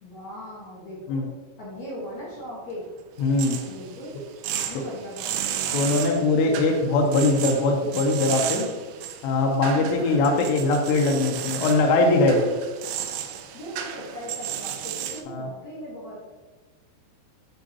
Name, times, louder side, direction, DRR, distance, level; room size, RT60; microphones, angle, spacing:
voice 1, 0.0-1.2 1.6-2.9 3.7-5.3 6.1-6.2 13.5-16.2, equal, 60° left, -8 dB, 2.1 m, -39 dB
voice 2, 3.2-3.6 5.7-8.7 9.2-12.5 15.3-15.5, left 2 dB, 85° left, 1 dB, 2.8 m, -21 dB
sound 1, 3.2-15.2, right 10 dB, 90° right, 2.9 m, -33 dB
9.8 x 3.8 x 2.8 m, 1.3 s
omnidirectional pair, 5.1 m